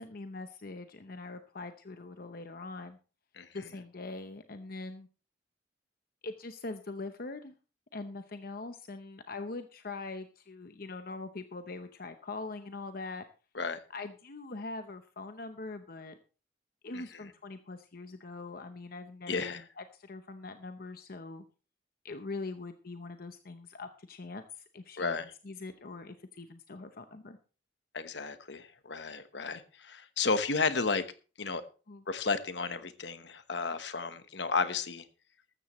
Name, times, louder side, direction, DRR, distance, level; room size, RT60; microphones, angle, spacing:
voice 1, 0.0-3.0 3.5-5.1 6.2-7.5 7.9-13.2 13.9-16.2 16.8-21.4 22.0-27.4 31.9-32.0, left 3 dB, 50° left, 8 dB, 0.8 m, -42 dB
voice 2, 19.3-19.6 25.0-25.3 27.9-31.0 31.4-31.6 32.1-35.0, left 4 dB, 65° left, 11 dB, 1.1 m, -33 dB
14.0 x 13.0 x 3.1 m, 0.34 s
head